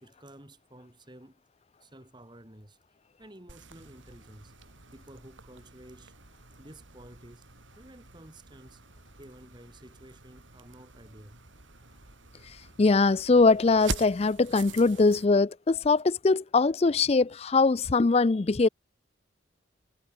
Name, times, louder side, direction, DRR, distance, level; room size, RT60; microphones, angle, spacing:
voice 1, 0.0-1.4 1.8-2.8 3.2-4.5 4.9-6.1 6.6-7.5 7.8-8.8 9.2-11.4, right 1 dB, 20° right, 2.3 m, -51 dB
sound 1, 3.5-15.3, right 3 dB, 75° right, 3.1 m, -44 dB
voice 2, 12.8-18.7, left 3 dB, 30° left, 0.4 m, -22 dB
head